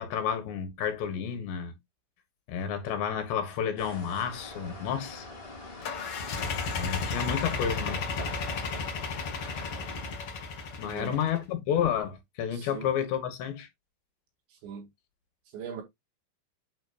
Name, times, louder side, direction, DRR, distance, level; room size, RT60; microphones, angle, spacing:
voice 1, 0.0-1.8 2.5-5.3 6.7-8.1 10.8-13.7, left 8 dB, 70° left, 3.5 m, -31 dB
sound 1, 3.8-10.2, left 2 dB, 25° left, 1.2 m, -44 dB
sound 2, 5.8-11.4, left 4 dB, 85° left, 1.2 m, -33 dB
voice 2, 10.9-11.2 12.5-12.9 14.5-14.9 15.5-15.8, right 7 dB, 70° right, 4.7 m, -40 dB
8.7 x 6.3 x 2.5 m
omnidirectional pair, 5.4 m